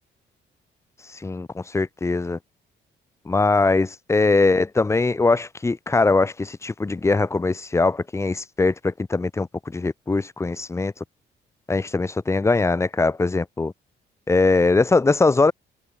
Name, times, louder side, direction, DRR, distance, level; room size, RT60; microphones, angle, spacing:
voice 1, 1.2-2.4 3.3-10.9 11.7-13.7 14.3-15.5, left 3 dB, 15° left, 0.5 m, -21 dB
cardioid pair, 90°, 20 cm